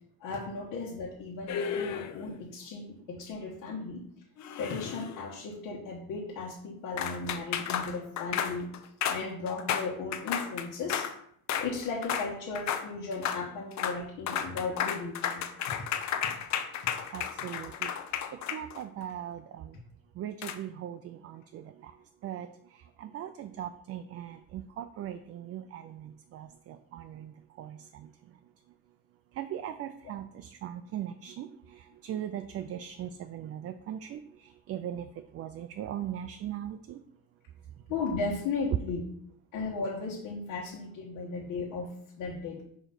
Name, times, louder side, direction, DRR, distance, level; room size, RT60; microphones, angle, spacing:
voice 1, 0.2-4.0 4.6-8.7 9.1-11.1 11.6-15.7 37.9-39.0 39.5-42.6, left 4 dB, 75° left, -4 dB, 1.4 m, -36 dB
sound 1, 1.5-2.3 4.4-5.3 7.0-11.1 11.5-11.7 12.0-12.3 12.6-12.9 13.1-13.4 13.7-14.0 14.3-19.0 20.4-20.6, left 8 dB, 55° left, 0.7 m, -33 dB
voice 2, 17.1-17.9 18.5-19.8 20.2-21.9 22.2-22.5 22.7-28.1 29.4-37.0, right 10 dB, 45° right, 9 dB, 0.4 m, -40 dB
5.0 x 3.8 x 5.8 m, 0.67 s
cardioid pair, 125°, 34 cm